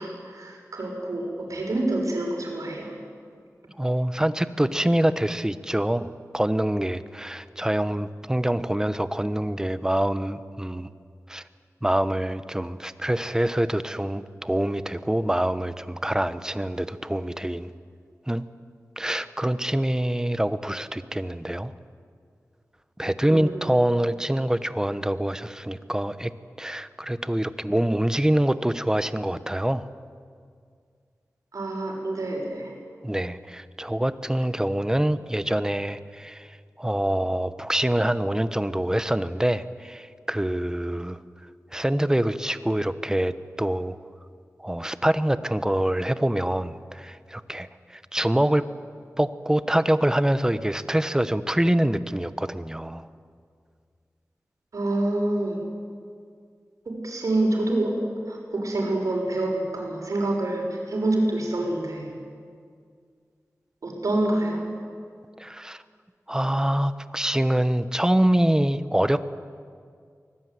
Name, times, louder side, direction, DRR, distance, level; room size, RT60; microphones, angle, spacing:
voice 1, 0.0-2.9 23.3-23.7 31.5-32.7 54.7-55.6 56.8-58.0 58.3-62.1 63.8-64.7, right 2 dB, 80° right, 1 dB, 6.4 m, -27 dB
voice 2, 3.8-6.1 6.3-10.9 11.3-11.4 11.8-17.7 18.3-18.4 19.0-21.7 23.0-26.3 26.6-29.9 33.0-41.2 41.7-44.0 44.6-48.7 49.2-53.1 65.4-65.8 66.3-69.3, right 1 dB, 10° right, 13 dB, 1.0 m, -25 dB
24.5 x 20.0 x 9.5 m, 2.1 s
wide cardioid pair, 90°, 6 cm